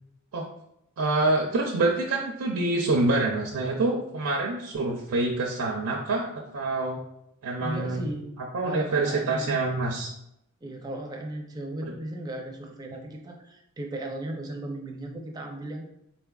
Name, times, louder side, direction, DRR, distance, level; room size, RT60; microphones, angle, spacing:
voice 1, 1.0-7.0 7.4-8.0 8.5-10.1 11.8-11.9, right 2 dB, 80° right, -1 dB, 0.5 m, -26 dB
voice 2, 7.6-8.3 8.6-9.6 10.6-15.8, right 1 dB, 20° right, 1 dB, 0.5 m, -36 dB
4.1 x 3.4 x 2.3 m, 0.80 s
head